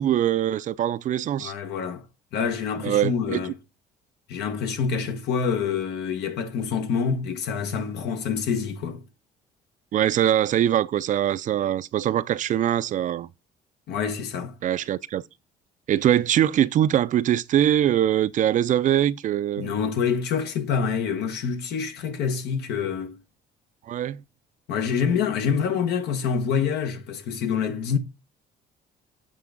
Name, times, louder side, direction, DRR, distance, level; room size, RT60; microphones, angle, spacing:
voice 1, 0.0-1.5 2.8-3.4 9.9-13.3 14.6-15.2 15.9-19.7 23.9-24.2, right 11 dB, 50° right, 0.4 m, -22 dB
voice 2, 1.4-2.0 2.3-3.5 4.3-9.0 13.9-14.5 19.6-23.2 24.7-28.0, left 6 dB, 75° left, 1.2 m, -26 dB
7.6 x 3.5 x 3.7 m
cardioid pair, 110°, 17 cm